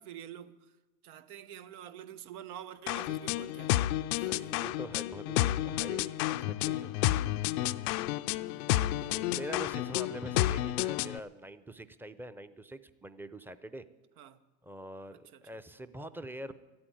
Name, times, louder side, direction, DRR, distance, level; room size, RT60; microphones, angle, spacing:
voice 1, 0.0-3.8 4.1-4.5 8.3-9.3 14.2-14.4 15.1-15.5, right 10 dB, 80° right, 1.0 m, -48 dB
sound 1, 2.9-11.2, left 15 dB, 80° left, 0.6 m, -31 dB
voice 2, 4.1-7.1 8.5-13.8 14.6-16.5, right 1 dB, 5° right, 0.6 m, -44 dB
13.5 x 8.8 x 9.3 m
supercardioid pair, 100°, 44 cm